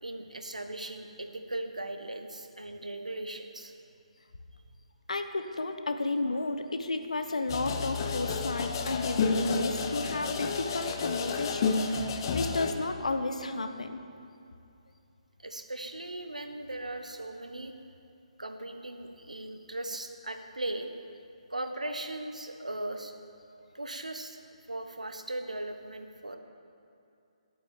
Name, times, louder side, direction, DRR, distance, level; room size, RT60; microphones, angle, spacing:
voice 1, 0.0-3.7 15.4-17.7 18.4-20.9 21.5-23.1 23.7-26.4, right 1 dB, 80° right, 6 dB, 1.2 m, -38 dB
voice 2, 5.1-14.0, left 2 dB, 65° left, 8 dB, 1.0 m, -32 dB
sound 1, 7.5-12.7, left 4 dB, 35° left, 0.9 m, -30 dB
11.0 x 8.9 x 7.5 m, 2.5 s
figure-of-eight pair, 140°, 4 cm